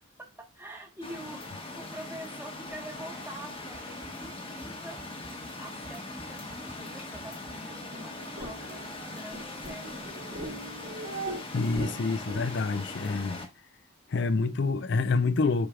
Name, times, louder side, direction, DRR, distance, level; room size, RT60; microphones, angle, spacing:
voice 1, 0.4-5.0 5.6-10.6, right 1 dB, 10° right, 1.3 m, -45 dB
sound 1, 1.0-13.5, left 2 dB, 25° left, 1.1 m, -41 dB
sound 2, 3.7-7.8, right 1 dB, 35° right, 2.4 m, -53 dB
sound 3, 7.7-12.8, right 2 dB, 60° right, 2.5 m, -41 dB
voice 2, 11.5-13.5 14.1-15.7, left 3 dB, 55° left, 0.5 m, -27 dB
7.9 x 5.0 x 2.4 m
head